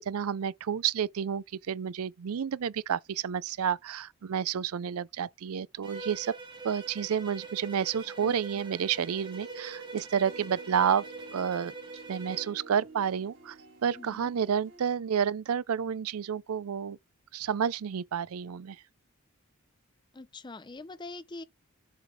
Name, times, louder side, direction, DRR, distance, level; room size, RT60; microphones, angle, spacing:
voice 1, 0.1-6.3 6.6-11.0 11.3-11.7 12.1-13.6 13.8-17.0 17.3-18.8, right 8 dB, 80° right, 0.4 m, -30 dB
Bowed string instrument, 5.8-12.6, right 3 dB, 20° right, 1.7 m, -44 dB
sound 1, 9.0-14.8, right 4 dB, 60° right, 3.2 m, -50 dB
voice 2, 14.0-14.3 20.1-21.4, left 2 dB, 20° left, 0.5 m, -43 dB
7.4 x 3.9 x 4.7 m
head